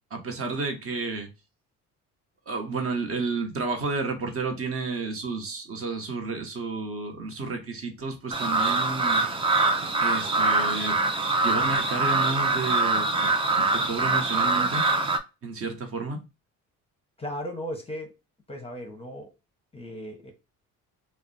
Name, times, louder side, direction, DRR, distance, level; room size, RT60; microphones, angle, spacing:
voice 1, 0.1-1.3 2.5-9.2 10.0-11.0 11.4-13.3 13.5-14.8 15.4-16.2, right 3 dB, 40° right, 0.9 m, -31 dB
sound 1, 8.3-15.2, right 3 dB, 15° right, 0.3 m, -24 dB
voice 2, 17.2-18.1 18.5-19.3 19.7-20.3, equal, 15° left, 0.7 m, -36 dB
2.5 x 2.0 x 3.8 m
cardioid pair, 95°, 35 cm